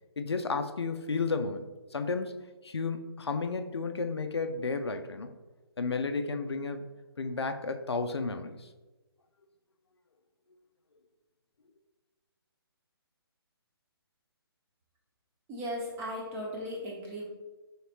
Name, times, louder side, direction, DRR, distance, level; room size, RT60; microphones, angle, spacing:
voice 1, 0.2-1.6 1.9-2.4 2.6-5.3 5.8-6.8 7.2-8.7, left 4 dB, 90° left, 7 dB, 0.4 m, -32 dB
voice 2, 15.5-17.2, equal, 20° right, -3 dB, 0.9 m, -37 dB
4.1 x 3.2 x 2.9 m, 1.2 s
figure-of-eight pair, 140°, 13 cm